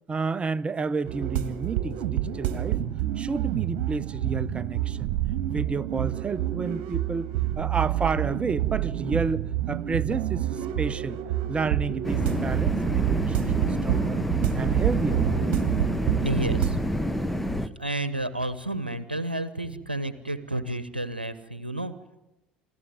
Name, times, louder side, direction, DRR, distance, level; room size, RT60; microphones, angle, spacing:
voice 1, 0.1-2.8 3.2-5.1 5.5-11.2 11.5-15.2, right 4 dB, 20° right, 0.7 m, -31 dB
sound 1, 1.0-16.8, right 12 dB, 55° right, 1.5 m, -28 dB
sound 2, 12.0-17.7, equal, 5° left, 1.0 m, -28 dB
voice 2, 16.2-16.8 17.6-21.9, right 1 dB, 85° right, 0.9 m, -31 dB
26.5 x 14.0 x 9.2 m
figure-of-eight pair, 65°, 5 cm